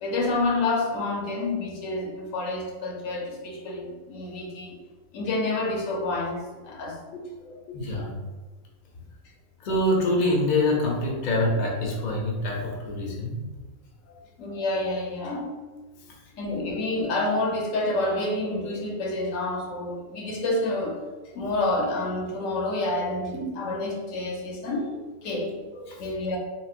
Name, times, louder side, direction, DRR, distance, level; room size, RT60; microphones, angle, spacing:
voice 1, 0.0-4.8 5.1-7.8 14.4-15.6 16.4-21.0 21.3-26.4, left 2 dB, 75° left, 0 dB, 1.0 m, -29 dB
voice 2, 7.7-8.2 9.6-13.4 25.9-26.0, left 1 dB, 50° left, -2 dB, 0.5 m, -25 dB
3.8 x 2.0 x 2.4 m, 1.3 s
omnidirectional pair, 1.4 m